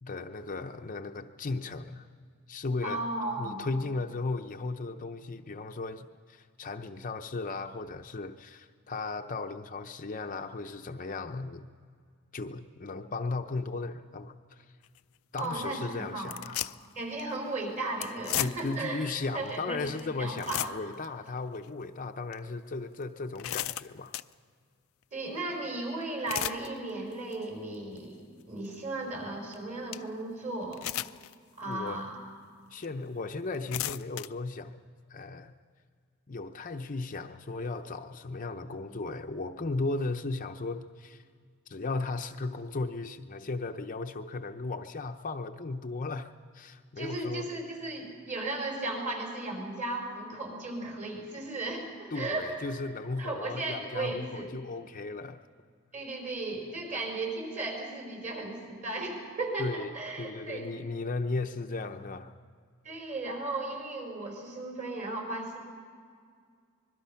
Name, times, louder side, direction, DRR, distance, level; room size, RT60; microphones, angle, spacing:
voice 1, 0.0-2.1 2.5-3.0 3.4-11.7 12.3-14.7 15.3-16.6 18.4-24.1 31.6-32.0 32.7-34.8 35.1-35.5 36.3-41.2 41.7-47.5 52.1-55.4 59.6-62.3, left 3 dB, 40° left, 0.7 m, -36 dB
voice 2, 2.8-3.7 15.4-16.4 16.9-19.8 20.2-20.7 25.1-28.2 28.5-30.9 31.6-32.2 47.0-52.6 53.2-54.5 55.9-60.7 62.8-65.6, right 2 dB, 35° right, 5.6 m, -35 dB
sound 1, 14.8-15.0 15.4-15.5 16.2-16.9 17.2-17.3 18.0-18.8 19.5-19.6 20.0-20.1 20.3-21.0 21.5-21.7 22.3-22.4 23.0-24.3 26.0-26.7 27.1-27.4 28.0-28.1 29.5-29.6 29.9-30.0 30.7-31.3 31.9-32.0 32.8-32.9 33.5-34.3, left 13 dB, 80° left, 0.5 m, -34 dB
25.5 x 21.5 x 5.7 m
head